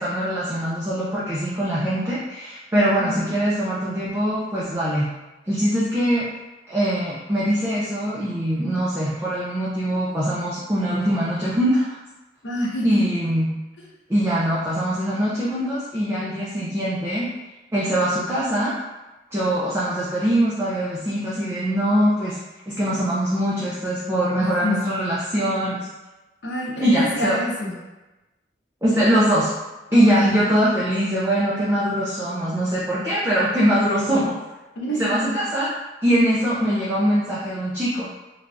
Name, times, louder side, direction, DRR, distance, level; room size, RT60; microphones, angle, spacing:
voice 1, 0.0-5.1 5.5-6.2 6.7-11.8 12.8-13.5 14.1-17.3 17.7-18.7 19.3-22.4 22.7-25.9 26.8-27.4 28.8-29.5 29.9-34.3 35.0-35.7 36.0-38.1, equal, 15° right, -9 dB, 0.4 m, -22 dB
voice 2, 2.7-3.2 12.4-13.1 24.6-25.0 26.4-27.8 29.9-30.1 34.8-35.3, left 1 dB, 85° left, -3 dB, 0.6 m, -27 dB
3.2 x 2.2 x 2.5 m, 1.1 s
head